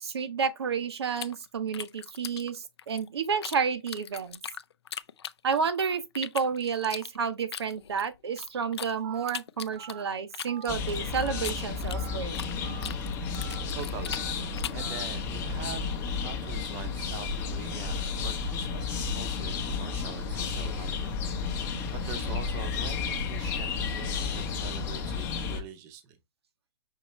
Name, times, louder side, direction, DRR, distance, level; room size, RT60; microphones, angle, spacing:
voice 1, 0.0-4.4 5.4-12.4, right 6 dB, 75° right, 0.8 m, -30 dB
sound 1, 1.1-3.6 3.9-5.8 6.1-8.9 9.3-12.6 12.8-14.9, left 8 dB, 80° left, 0.4 m, -40 dB
Telephone, 9.0-9.3 9.8-10.0 10.5-10.7 11.2-11.5 11.9-12.2 12.6-12.9 13.3-13.6 14.1-14.3 14.8-15.0, right 6 dB, 45° right, 0.9 m, -45 dB
sound 2, 10.7-25.6, left 5 dB, 20° left, 0.7 m, -32 dB
voice 2, 13.8-14.2 14.7-15.8 16.1-21.4 21.9-26.2, right 8 dB, 20° right, 0.7 m, -43 dB
5.6 x 2.9 x 3.0 m
hypercardioid pair, 155°, 14 cm